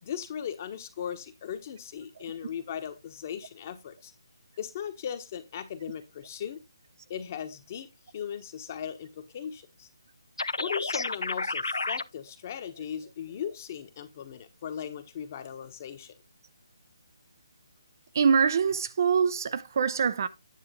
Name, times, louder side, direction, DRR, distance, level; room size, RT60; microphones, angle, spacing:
voice 1, 0.0-4.1 4.6-6.6 7.1-9.9 10.6-16.2, left 8 dB, 35° left, 1.1 m, -38 dB
sound 1, 10.4-12.0, left 3 dB, 85° left, 0.4 m, -30 dB
voice 2, 18.1-20.3, right 6 dB, 45° right, 0.5 m, -24 dB
9.6 x 3.7 x 5.1 m
figure-of-eight pair, 155°, 2 cm